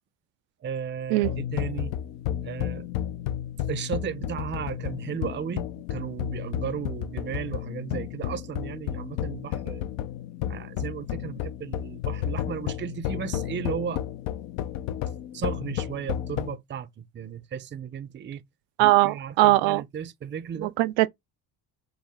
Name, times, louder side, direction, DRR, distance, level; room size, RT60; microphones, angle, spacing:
voice 1, 0.6-2.0 2.4-2.9 3.7-9.8 10.5-14.0 15.3-18.4 18.8-20.7, right 7 dB, 25° right, 0.5 m, -35 dB
sound 1, 1.2-16.6, left 11 dB, 75° left, 0.7 m, -32 dB
voice 2, 18.8-19.8 20.6-21.1, right 19 dB, 80° right, 0.5 m, -20 dB
5.6 x 2.1 x 3.5 m
supercardioid pair, 85°, 45 cm